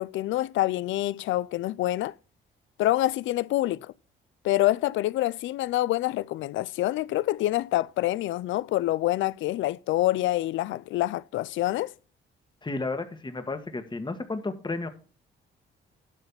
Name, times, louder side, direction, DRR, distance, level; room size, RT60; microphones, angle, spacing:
voice 1, 0.0-2.1 2.8-3.9 4.4-11.9, left 15 dB, 75° left, 0.4 m, -26 dB
voice 2, 12.6-14.9, left 3 dB, 25° left, 1.6 m, -32 dB
12.0 x 4.1 x 7.1 m
cardioid pair, 90°, 20 cm